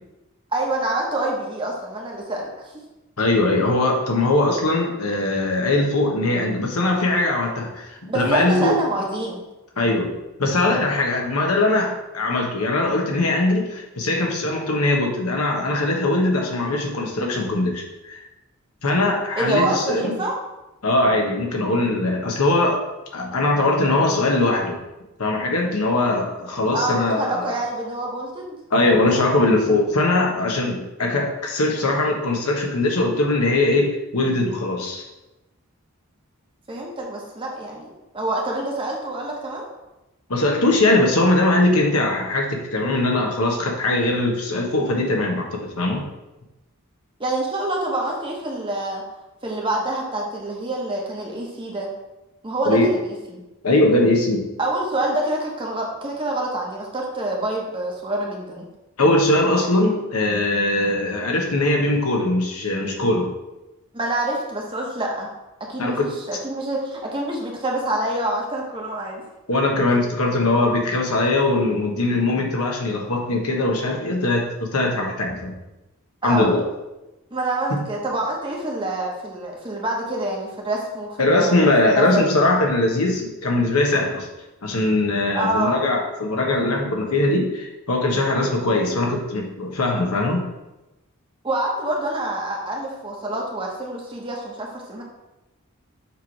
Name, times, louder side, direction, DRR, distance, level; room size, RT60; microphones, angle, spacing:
voice 1, 0.5-2.7 8.1-9.4 19.4-20.3 26.7-28.6 36.7-37.9 38.1-39.7 47.2-49.0 49.4-51.9 52.4-53.4 54.6-58.6 63.9-65.3 65.6-69.2 76.2-76.5 77.3-82.4 85.3-85.9 91.4-95.0, right 1 dB, 25° right, -2 dB, 1.0 m, -26 dB
voice 2, 3.2-8.8 9.8-10.1 10.4-18.2 18.8-20.1 20.8-22.8 23.1-24.8 25.2-27.5 28.7-35.0 40.3-46.0 52.6-52.9 53.6-54.4 59.0-63.3 65.8-66.1 69.5-75.5 76.2-76.6 81.2-84.3 84.6-90.4, left 2 dB, 85° left, 1 dB, 1.2 m, -21 dB
6.7 x 3.2 x 4.6 m, 0.99 s
head